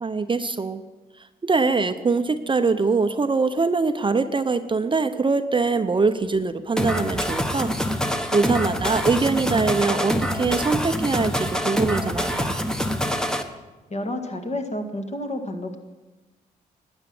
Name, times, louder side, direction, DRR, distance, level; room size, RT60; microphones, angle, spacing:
voice 1, 0.0-0.8 1.4-8.0 8.3-12.6, right 4 dB, 30° right, 9 dB, 0.7 m, -23 dB
sound 1, 6.8-13.4, equal, 5° left, 1.1 m, -25 dB
voice 2, 13.9-15.8, left 1 dB, 40° left, 4 dB, 1.9 m, -30 dB
12.0 x 9.0 x 6.1 m, 1.1 s
supercardioid pair, 55°, 17 cm